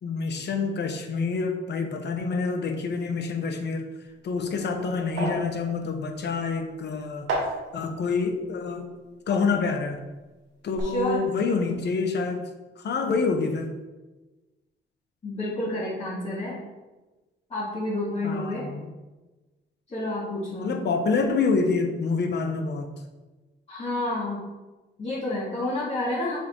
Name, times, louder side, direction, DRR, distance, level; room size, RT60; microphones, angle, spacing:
voice 1, 0.0-3.9 4.2-7.3 7.7-8.9 9.3-10.0 10.6-12.4 12.8-13.7 18.2-18.9 20.6-22.9, left 4 dB, 60° left, 5 dB, 1.1 m, -27 dB
sound 1, 4.1-10.2 10.5-10.8, right 2 dB, 85° right, 2.5 m, -36 dB
voice 2, 10.8-11.3 15.2-16.6 17.5-18.7 19.9-20.7 23.7-24.4 25.0-26.4, left 1 dB, 30° left, -8 dB, 2.2 m, -29 dB
6.8 x 4.6 x 4.6 m, 1.2 s
cardioid pair, 90°, 20 cm